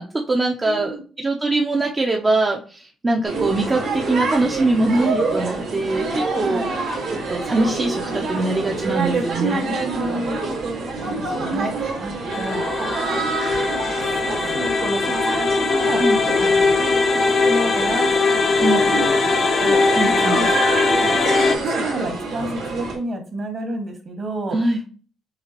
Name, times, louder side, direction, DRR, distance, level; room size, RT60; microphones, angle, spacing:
voice 1, 0.0-6.8 7.1-9.7 16.0-16.2 18.6-18.9 20.0-20.4 24.5-24.8, right 2 dB, 25° right, 0 dB, 0.7 m, -22 dB
voice 2, 0.6-1.0 6.3-6.8 9.6-13.5 13.8-14.0 14.3-16.0 16.4-18.2 18.9-20.6 20.9-24.6, right 2 dB, 50° right, 3 dB, 1.7 m, -31 dB
sound 1, 3.2-23.0, right 3 dB, 85° right, 2.0 m, -27 dB
sound 2, 12.3-21.6, left 4 dB, 50° left, 0.7 m, -20 dB
6.8 x 2.4 x 3.0 m, 0.39 s
cardioid pair, 90°, 0 cm